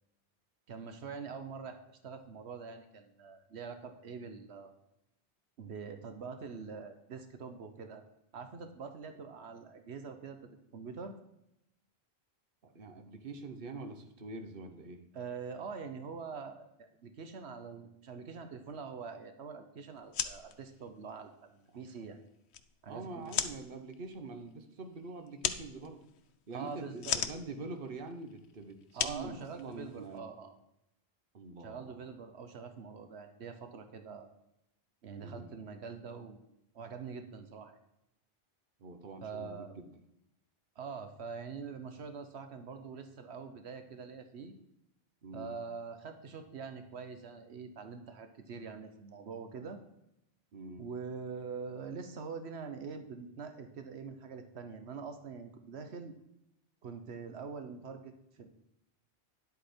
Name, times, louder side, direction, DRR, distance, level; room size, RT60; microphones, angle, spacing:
voice 1, 0.7-4.7 5.6-8.0 8.3-10.4 10.7-11.1 15.1-22.2 22.8-23.3 26.5-27.2 28.9-30.5 31.6-34.3 35.0-36.4 36.7-37.8 39.2-39.7 40.8-44.5 45.3-49.8 50.8-56.1 56.8-58.5, right 5 dB, 90° right, 7 dB, 1.2 m, -44 dB
voice 2, 12.6-15.0 22.9-26.1 26.5-30.3 31.3-32.1 35.2-35.5 38.8-39.9 45.2-45.6 50.5-50.8, right 3 dB, 60° right, 7 dB, 1.2 m, -45 dB
sound 1, 20.0-30.2, left 8 dB, 90° left, 1.0 m, -40 dB
10.5 x 8.1 x 4.4 m, 0.83 s
omnidirectional pair, 1.1 m